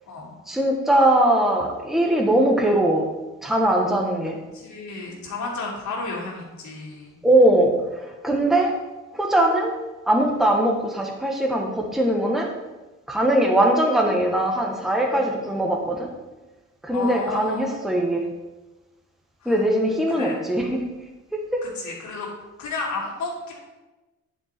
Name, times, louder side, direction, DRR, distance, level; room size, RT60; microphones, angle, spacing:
voice 1, 0.5-3.0 3.4-4.4 7.2-7.7 8.2-8.7 9.1-9.7 10.1-12.5 13.1-16.1 16.8-18.2 19.5-20.7 21.5-21.6, right 1 dB, ahead, 0 dB, 1.1 m, -20 dB
voice 2, 4.5-7.2 15.1-15.2 16.9-17.7 19.4-19.6 20.1-20.4 21.6-22.3 22.6-23.6, left 3 dB, 70° left, -3 dB, 2.5 m, -32 dB
9.8 x 4.6 x 4.3 m, 1.1 s
cardioid pair, 90°, 30 cm